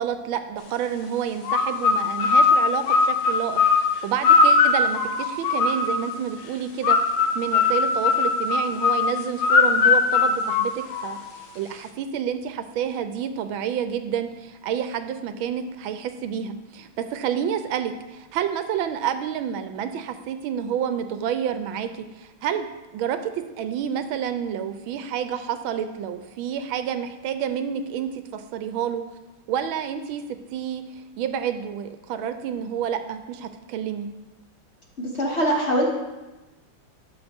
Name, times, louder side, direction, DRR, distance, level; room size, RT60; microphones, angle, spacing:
voice 1, 0.0-7.0 7.3-21.9 22.2-22.7 22.9-29.0 29.5-30.2 30.5-30.8 31.2-34.1, right 8 dB, 80° right, 9 dB, 1.3 m, -29 dB
sound 1, 1.5-6.2 6.8-11.3, left 4 dB, 70° left, 1.4 m, -20 dB
voice 2, 35.0-35.9, equal, 40° left, -2 dB, 1.2 m, -23 dB
12.0 x 6.2 x 3.5 m, 1.1 s
omnidirectional pair, 2.3 m